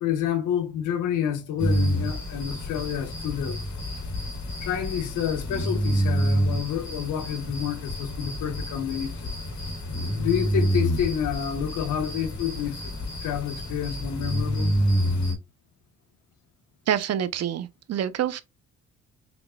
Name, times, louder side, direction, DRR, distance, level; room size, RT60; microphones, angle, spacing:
voice 1, 0.0-3.6 4.6-9.4 10.2-12.9 13.2-14.7, left 9 dB, 85° left, 1.3 m, -29 dB
sound 1, 1.6-15.3, equal, 70° left, 2.9 m, -28 dB
voice 2, 16.9-18.4, right 10 dB, 55° right, 0.7 m, -27 dB
5.7 x 3.8 x 2.3 m
cardioid pair, 90°, 30 cm